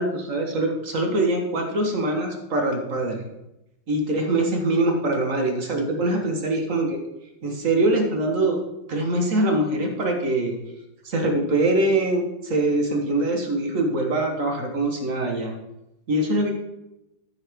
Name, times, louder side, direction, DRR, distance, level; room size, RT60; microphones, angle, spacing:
voice 1, 0.0-3.2 3.9-7.0 7.4-8.6 8.9-10.6 11.0-15.6 16.1-16.5, right 2 dB, 40° right, 3 dB, 1.6 m, -23 dB
12.5 x 6.6 x 3.6 m, 0.90 s
omnidirectional pair, 2.3 m